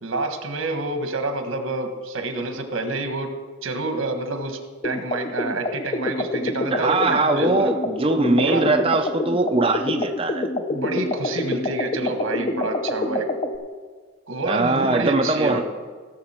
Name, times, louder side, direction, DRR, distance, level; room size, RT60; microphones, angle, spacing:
voice 1, 0.0-3.3 3.6-7.7 8.3-8.6 10.7-13.3 14.3-15.6, right 2 dB, 85° right, 6 dB, 1.4 m, -28 dB
sound 1, 4.8-13.6, left 2 dB, 30° left, 0.6 m, -27 dB
voice 2, 6.7-10.5 14.5-15.6, right 2 dB, 25° right, 4 dB, 0.4 m, -21 dB
16.0 x 7.0 x 4.4 m, 1.5 s
head